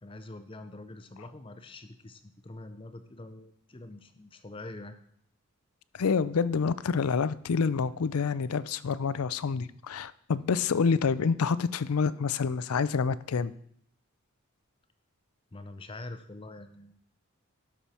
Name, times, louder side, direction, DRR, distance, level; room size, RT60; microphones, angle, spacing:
voice 1, 0.0-5.0 15.5-17.0, left 2 dB, 25° left, 10 dB, 0.6 m, -45 dB
voice 2, 6.0-13.5, left 5 dB, 90° left, 17 dB, 0.5 m, -27 dB
12.5 x 6.1 x 4.3 m, 0.66 s
head